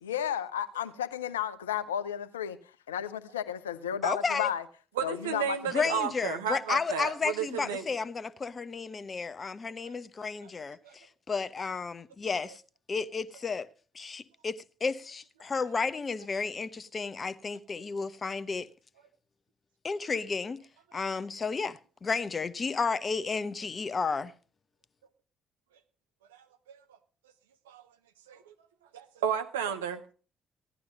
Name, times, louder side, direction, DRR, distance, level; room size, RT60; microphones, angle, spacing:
voice 1, 0.0-2.6 2.9-4.6 5.0-5.6 5.8-6.1, left 9 dB, 80° left, 0.7 m, -33 dB
voice 2, 4.0-4.5 5.7-12.6 12.9-13.7 13.9-18.7 19.8-20.6 20.9-24.3, left 4 dB, 35° left, 0.9 m, -32 dB
voice 3, 5.0-7.8 9.8-9.9 10.2-10.5 10.8-10.9 26.3-26.8 27.7-27.8 28.3-28.5 28.9-30.1, right 8 dB, 75° right, 1.0 m, -33 dB
16.0 x 11.5 x 5.2 m
figure-of-eight pair, 45°, 0 cm